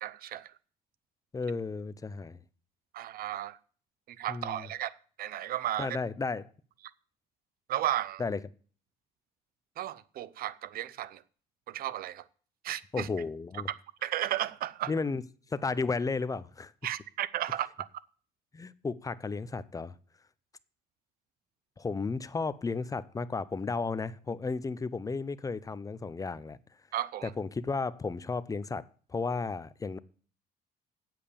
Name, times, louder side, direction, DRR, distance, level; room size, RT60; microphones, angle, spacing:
voice 1, 0.0-0.5 2.9-3.6 4.1-4.9 5.2-6.0 7.7-8.2 9.8-11.2 11.7-12.2 12.6-13.1 13.7-14.9 16.8-17.9 26.9-27.3, right 12 dB, 60° right, 0.7 m, -34 dB
voice 2, 1.3-2.4 4.3-4.7 5.8-6.5 8.2-8.4 12.9-13.7 14.9-15.2 15.5-16.7 18.5-19.9 21.8-26.6 27.2-30.0, left 4 dB, 20° left, 0.6 m, -33 dB
8.6 x 7.6 x 6.9 m
cardioid pair, 110°, 17 cm